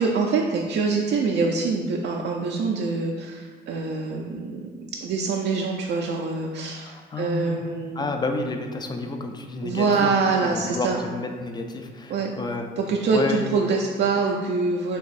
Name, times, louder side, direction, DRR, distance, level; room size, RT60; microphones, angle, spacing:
voice 1, 0.0-4.7 5.0-8.1 9.6-11.0 12.1-12.3 12.8-15.0, right 4 dB, 60° right, 0 dB, 0.4 m, -25 dB
voice 2, 6.9-7.7 8.0-10.1 10.4-12.7 13.1-13.4, left 3 dB, 20° left, 5 dB, 0.4 m, -30 dB
3.5 x 3.0 x 4.0 m, 1.5 s
cardioid pair, 90°, 20 cm